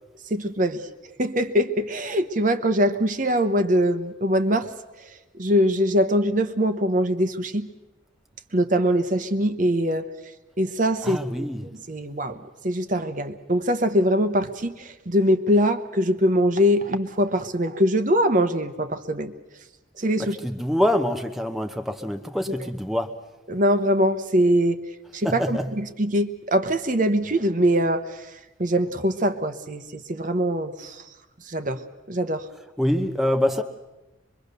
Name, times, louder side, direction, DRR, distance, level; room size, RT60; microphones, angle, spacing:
voice 1, 0.3-4.7 5.4-7.7 8.5-10.1 10.6-11.5 11.9-12.4 12.6-19.3 20.0-20.4 23.5-24.8 25.1-28.3 28.6-31.0 31.5-31.8 32.1-32.5, equal, 40° right, 9 dB, 1.0 m, -22 dB
voice 2, 11.0-11.7 20.2-23.1 25.2-25.7 32.8-33.6, left 1 dB, ahead, 4 dB, 0.9 m, -25 dB
24.5 x 22.5 x 6.8 m, 1.1 s
head